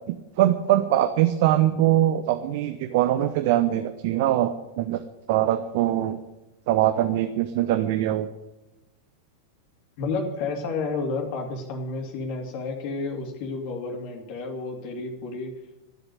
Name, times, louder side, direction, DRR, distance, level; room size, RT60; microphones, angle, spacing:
voice 1, 0.1-5.0 5.3-6.2 6.7-8.3, right 13 dB, 50° right, 10 dB, 0.8 m, -22 dB
voice 2, 10.0-15.5, left 3 dB, 45° left, 2 dB, 2.8 m, -31 dB
14.0 x 8.1 x 9.3 m, 1.0 s
figure-of-eight pair, 90°, 0 cm